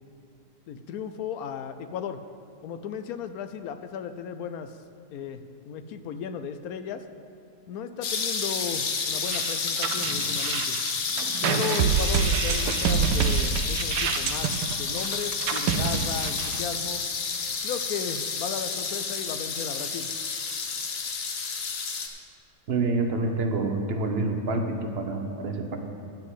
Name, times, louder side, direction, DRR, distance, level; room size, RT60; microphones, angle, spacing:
voice 1, 0.7-2.2 2.6-4.7 5.1-7.0 7.7-10.8 11.4-17.0 17.6-20.1, left 7 dB, 70° left, 10 dB, 0.9 m, -35 dB
sound 1, 8.0-22.1, left 5 dB, 55° left, 1.2 m, -30 dB
sound 2, 9.3-16.8, right 7 dB, 80° right, 1.2 m, -27 dB
voice 2, 22.7-25.8, right 3 dB, 50° right, 4 dB, 0.8 m, -27 dB
10.5 x 5.9 x 8.0 m, 2.6 s
omnidirectional pair, 1.9 m